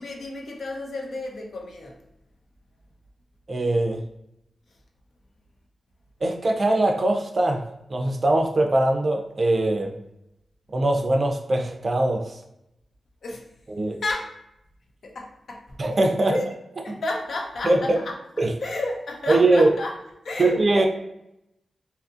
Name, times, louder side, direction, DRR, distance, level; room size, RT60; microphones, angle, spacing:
voice 1, 0.0-2.0 13.2-13.5 14.0-14.3 15.0-15.8 16.3-16.5 16.8-18.2 18.6-20.0 20.2-20.9, left 2 dB, 70° left, 1 dB, 0.6 m, -31 dB
voice 2, 3.5-4.0 6.2-7.6 7.9-9.9 10.7-12.3 13.8-14.0 15.8-16.3 16.9-17.0 17.6-18.0 18.4-18.5 19.3-19.7 20.4-20.9, right 2 dB, 45° right, 3 dB, 0.4 m, -21 dB
2.8 x 2.5 x 2.4 m, 0.83 s
cardioid pair, 70°, 0 cm